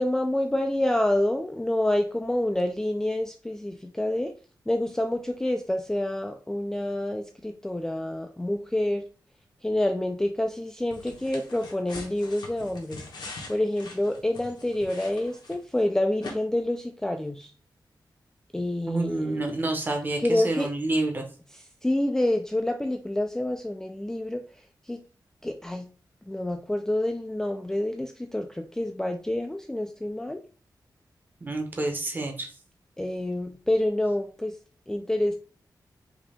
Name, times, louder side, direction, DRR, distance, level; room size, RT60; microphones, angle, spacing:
voice 1, 0.0-4.3 4.7-9.0 9.6-13.1 13.5-17.5 18.5-19.4 20.2-20.7 21.5-24.4 24.8-25.0 25.4-25.9 26.3-30.4 33.0-34.6 34.9-35.3, left 1 dB, 5° left, 4 dB, 0.3 m, -27 dB
sound 1, 10.9-15.8 16.2-16.3, left 3 dB, 75° left, 1.1 m, -43 dB
voice 2, 18.9-21.2 31.4-32.5, right 2 dB, 25° right, 3 dB, 0.9 m, -28 dB
4.9 x 2.8 x 3.4 m, 0.38 s
wide cardioid pair, 175°, 7 cm